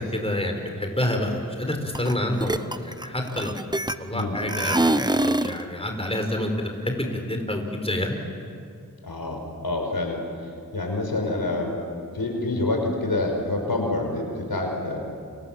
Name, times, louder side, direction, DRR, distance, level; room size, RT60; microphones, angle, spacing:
voice 1, 0.0-3.6 4.0-4.7 5.2-8.2, left 1 dB, 15° left, 3 dB, 4.7 m, -28 dB
sound 1, 1.9-2.1 2.4-4.2 4.5-5.6, right 1 dB, 10° right, 1.0 m, -24 dB
voice 2, 4.1-4.4 9.0-10.2 10.7-11.8 12.1-15.0, left 2 dB, 90° left, 2 dB, 5.4 m, -27 dB
29.5 x 26.5 x 7.6 m, 2.3 s
wide cardioid pair, 45°, 35 cm